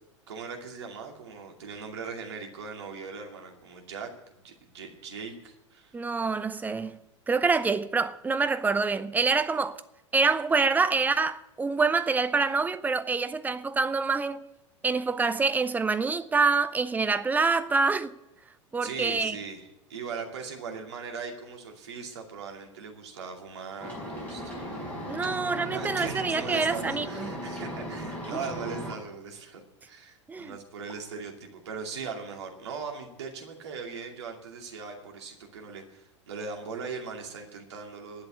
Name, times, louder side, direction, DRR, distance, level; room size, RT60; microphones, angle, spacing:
voice 1, 0.3-4.1 4.4-6.0 18.8-24.5 25.2-25.4 25.7-38.3, right 5 dB, 60° right, 2.5 m, -39 dB
voice 2, 5.9-7.0 7.3-9.8 10.1-14.4 14.8-18.1 18.7-19.4 25.1-27.3 30.3-30.5, right 4 dB, 10° right, 0.6 m, -26 dB
sound 1, 23.8-28.9, equal, 10° left, 5.7 m, -37 dB
sound 2, 24.9-25.2 26.9-27.3 28.9-29.1 30.9-31.2, left 1 dB, 80° left, 2.3 m, -52 dB
11.5 x 7.8 x 9.4 m
figure-of-eight pair, 90°, 16 cm